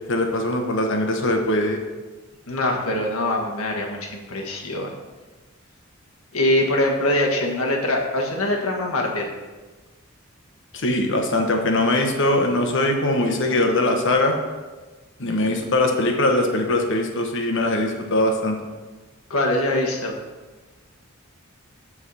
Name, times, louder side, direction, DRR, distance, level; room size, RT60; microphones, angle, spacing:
voice 1, 0.1-1.8 10.7-14.4 15.2-18.5, left 1 dB, 60° left, 3 dB, 1.2 m, -21 dB
voice 2, 2.5-4.9 6.3-9.3 19.3-20.1, left 1 dB, 80° left, 0 dB, 1.5 m, -23 dB
7.4 x 4.8 x 7.0 m, 1.3 s
head